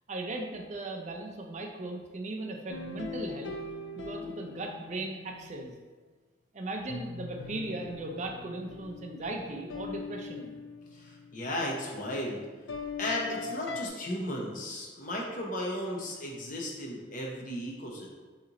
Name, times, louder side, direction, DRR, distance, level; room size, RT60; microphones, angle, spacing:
voice 1, 0.1-3.5 4.0-5.7 6.5-10.5, right 2 dB, 40° right, 2 dB, 0.5 m, -37 dB
sound 1, 2.7-5.5 6.9-11.4 12.7-13.9, left 4 dB, 75° left, 0.4 m, -41 dB
voice 2, 10.9-12.4 13.0-18.1, left 1 dB, 45° left, -1 dB, 0.8 m, -35 dB
4.1 x 2.9 x 3.9 m, 1.3 s
head